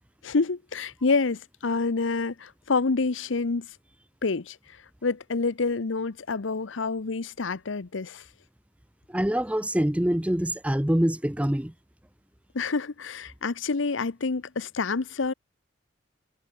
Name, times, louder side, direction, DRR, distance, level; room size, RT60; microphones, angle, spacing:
voice 1, 0.2-3.7 4.2-4.6 5.0-8.2 12.5-15.3, left 4 dB, 75° left, 0.8 m, -27 dB
voice 2, 9.1-11.7, equal, 5° right, 0.6 m, -25 dB
head